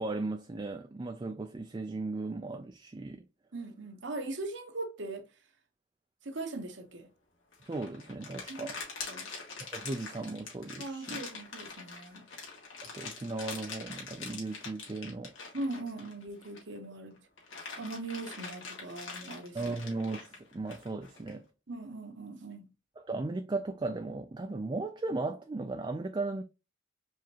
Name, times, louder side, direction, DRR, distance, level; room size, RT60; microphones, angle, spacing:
voice 1, 0.0-3.3 7.6-8.8 9.6-11.2 12.9-15.3 19.5-21.5 23.0-26.4, right 3 dB, 25° right, 0.4 m, -36 dB
voice 2, 3.5-5.3 6.2-7.1 8.5-8.7 9.1-9.3 10.8-12.2 15.5-17.2 17.8-19.8 21.7-22.7, right 2 dB, 65° right, 0.9 m, -40 dB
sound 1, 7.5-16.8 17.2-21.3, left 4 dB, 75° left, 2.0 m, -44 dB
4.8 x 3.5 x 2.8 m
head